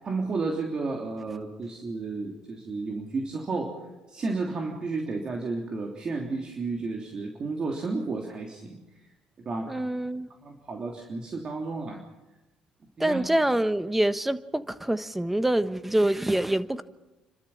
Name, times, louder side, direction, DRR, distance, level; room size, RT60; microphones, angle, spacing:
voice 1, 0.0-3.7 4.1-8.8 9.4-9.7 10.4-12.0 13.0-13.2, right 3 dB, 40° right, 1 dB, 3.2 m, -32 dB
voice 2, 9.7-10.3 13.0-16.8, right 1 dB, 10° right, 12 dB, 1.3 m, -25 dB
30.0 x 13.0 x 7.3 m, 1.0 s
cardioid pair, 85°, 2 cm